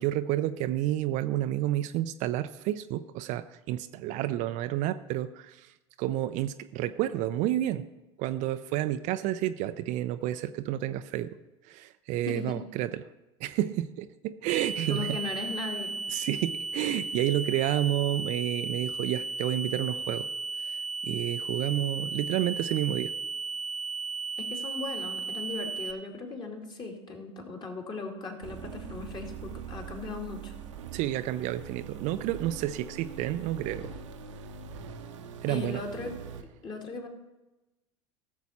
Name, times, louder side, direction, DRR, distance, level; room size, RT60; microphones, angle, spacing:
voice 1, 0.0-5.7 6.0-7.9 8.2-11.4 11.6-13.1 13.4-15.2 16.1-20.3 20.7-23.1 30.9-33.9 35.4-35.8, right 13 dB, 50° right, 11 dB, 0.5 m, -30 dB
voice 2, 12.3-12.6 14.9-16.0 24.4-30.5 35.5-36.2 36.6-37.1, left 3 dB, 30° left, 1 dB, 2.4 m, -38 dB
sound 1, 14.5-25.9, right 4 dB, ahead, 0.8 m, -35 dB
sound 2, 28.4-36.4, right 7 dB, 75° right, 0.9 m, -42 dB
14.5 x 7.1 x 4.2 m, 1.0 s
hypercardioid pair, 75°, 16 cm